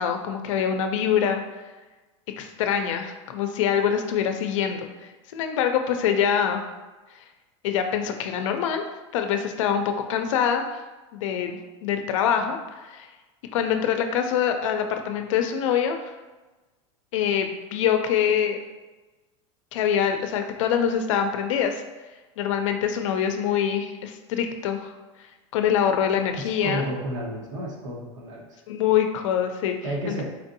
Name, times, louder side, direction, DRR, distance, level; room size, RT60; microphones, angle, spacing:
voice 1, 0.0-1.4 2.4-4.9 5.3-6.6 7.6-8.8 9.1-10.8 11.1-13.1 13.5-16.1 17.1-18.6 19.7-21.8 22.4-24.9 25.5-26.8 28.7-29.8 30.1-30.2, left 8 dB, 80° left, 6 dB, 0.5 m, -24 dB
voice 2, 26.3-28.6 29.8-30.2, right 1 dB, 85° right, -2 dB, 1.1 m, -32 dB
4.4 x 2.6 x 2.6 m, 1.2 s
supercardioid pair, 150°, 16 cm